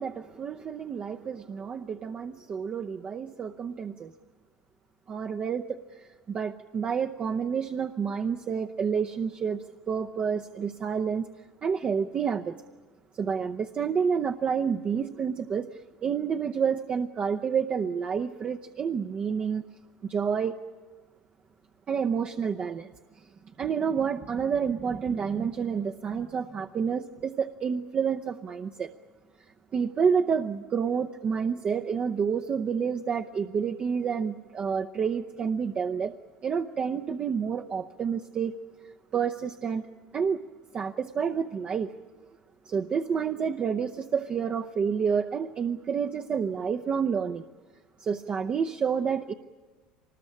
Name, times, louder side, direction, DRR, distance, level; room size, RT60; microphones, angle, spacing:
voice 1, 0.0-4.1 5.1-11.3 11.6-12.6 13.1-19.6 20.0-20.6 21.9-22.9 23.6-28.9 29.7-36.2 36.4-38.5 39.1-39.9 40.1-40.4 40.7-41.9 42.6-47.4 48.0-49.3, right 6 dB, 40° right, 4 dB, 0.8 m, -29 dB
24.5 x 20.5 x 8.7 m, 1.3 s
supercardioid pair, 90°, 3 cm